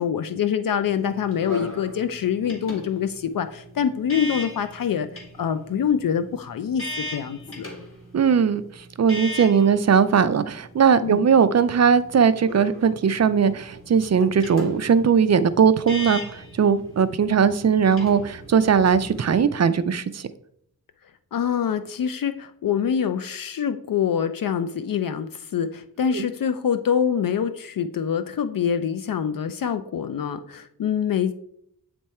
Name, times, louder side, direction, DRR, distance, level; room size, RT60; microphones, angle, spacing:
voice 1, 0.0-5.1 5.4-7.7 11.0-11.2 21.3-31.3, left 8 dB, 65° left, 10 dB, 0.5 m, -25 dB
sound 1, 0.8-19.4, left 1 dB, 35° left, 1.9 m, -39 dB
voice 2, 8.1-8.6 9.0-20.3 26.1-26.2, right 6 dB, 45° right, 13 dB, 0.4 m, -19 dB
8.5 x 3.5 x 4.2 m, 0.69 s
wide cardioid pair, 110°, 36 cm